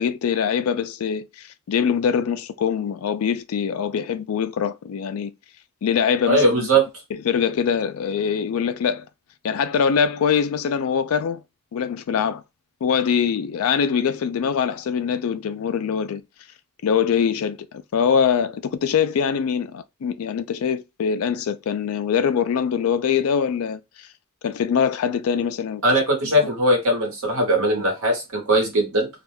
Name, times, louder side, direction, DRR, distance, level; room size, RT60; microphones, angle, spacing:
voice 1, 0.0-5.3 5.8-6.7 7.1-9.1 9.4-11.4 11.7-12.4 12.8-16.2 16.8-24.1 24.4-25.8, left 7 dB, 75° left, 0.3 m, -23 dB
voice 2, 6.3-6.8 25.8-29.1, right 1 dB, 75° right, 1.1 m, -20 dB
2.3 x 2.2 x 3.2 m
head